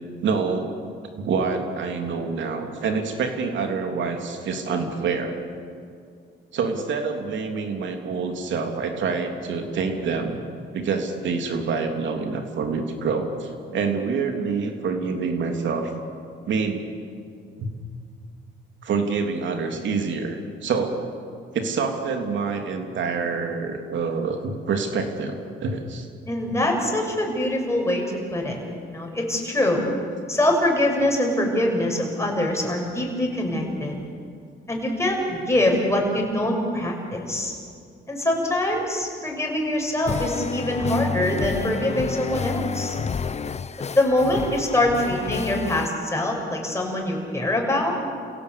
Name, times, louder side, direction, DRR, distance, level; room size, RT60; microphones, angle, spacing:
voice 1, 0.2-0.7 1.2-5.4 6.5-10.4 10.7-15.9 16.5-16.8 17.6-17.7 18.8-20.9 21.5-26.1 44.9-45.0, right 5 dB, 70° right, 4 dB, 3.3 m, -26 dB
voice 2, 26.3-28.0 28.3-28.6 28.9-29.8 30.3-34.0 34.7-37.5 38.1-43.0 43.9-48.0, left 1 dB, 15° left, 0 dB, 6.7 m, -24 dB
sound 1, 40.1-45.9, left 6 dB, 35° left, 0.8 m, -30 dB
28.5 x 17.0 x 8.4 m, 2.3 s
cardioid pair, 90°, 20 cm